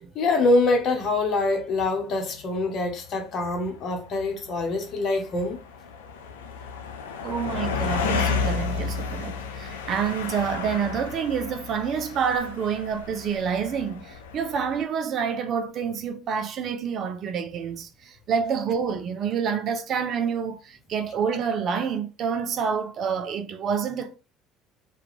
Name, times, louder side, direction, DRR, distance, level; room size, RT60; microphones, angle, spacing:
voice 1, 0.1-5.6, left 2 dB, 50° left, 0.9 m, -24 dB
sound 1, 0.8-0.9 1.6-1.7 2.0-3.1 3.4-14.8, left 5 dB, 85° left, 0.3 m, -32 dB
voice 2, 7.2-24.2, right 7 dB, 50° right, 0.4 m, -28 dB
2.4 x 2.3 x 2.9 m
hypercardioid pair, 65°, 0 cm